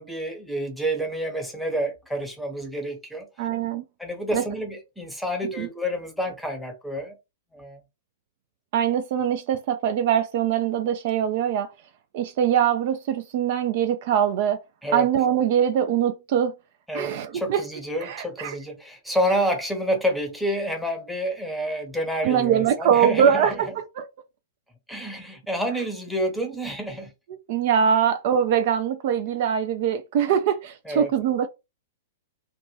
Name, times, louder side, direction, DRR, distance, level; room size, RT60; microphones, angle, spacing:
voice 1, 0.0-3.3 4.0-7.1 7.5-7.8 14.8-15.1 16.9-23.7 24.9-27.1 30.9-31.1, equal, ahead, 0.9 m, -29 dB
voice 2, 3.4-3.8 4.3-4.4 5.6-5.7 8.7-11.7 12.1-14.6 14.9-16.5 16.9-17.6 18.0-18.6 22.2-24.1 27.5-31.5, right 8 dB, 50° right, 0.3 m, -23 dB
2.5 x 2.2 x 3.2 m
figure-of-eight pair, 105°, 0 cm